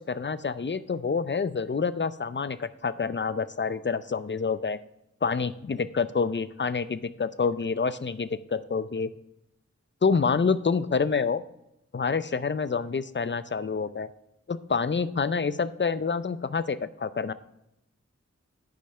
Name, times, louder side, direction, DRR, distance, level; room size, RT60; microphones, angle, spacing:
voice 1, 0.0-4.8 5.2-9.1 10.0-11.4 11.9-14.1 14.5-17.3, left 5 dB, 40° left, 15 dB, 0.5 m, -27 dB
10.5 x 5.3 x 4.4 m, 0.83 s
wide cardioid pair, 45°, 30 cm